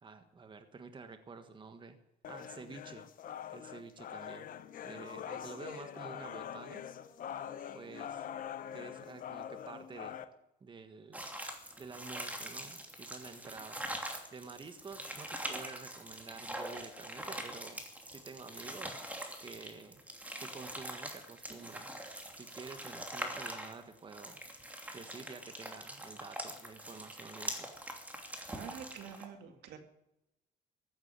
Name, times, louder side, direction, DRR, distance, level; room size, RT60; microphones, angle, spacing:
voice 1, 0.0-2.0 2.3-3.1 3.5-4.5 4.8-6.8 7.7-8.3 8.7-10.2 10.6-11.3 11.8-13.8 14.3-19.0 19.4-20.0 20.4-21.9 22.3-24.4 24.9-27.7, right 4 dB, 30° right, 8 dB, 1.5 m, -49 dB
sound 1, 2.2-10.2, left 9 dB, 55° left, 1.1 m, -44 dB
sound 2, 11.1-29.2, right 1 dB, 10° right, 2.8 m, -43 dB
voice 2, 28.5-29.8, right 8 dB, 75° right, 6 dB, 2.3 m, -47 dB
15.5 x 8.8 x 9.7 m, 0.88 s
cardioid pair, 110°, 17 cm